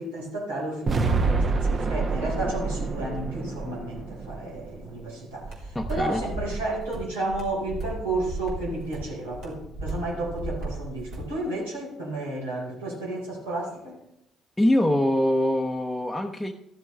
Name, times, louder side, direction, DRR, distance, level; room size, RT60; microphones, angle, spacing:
voice 1, 0.0-14.0, right 2 dB, 75° right, -3 dB, 4.1 m, -32 dB
sound 1, 0.9-5.0, right 4 dB, 40° right, 1.2 m, -27 dB
sound 2, 5.4-11.3, right 2 dB, 60° right, 3.1 m, -35 dB
voice 2, 5.7-6.2 14.6-16.5, left 1 dB, 5° left, 1 dB, 0.9 m, -23 dB
14.5 x 13.0 x 3.2 m, 0.84 s
figure-of-eight pair, 50°, 0 cm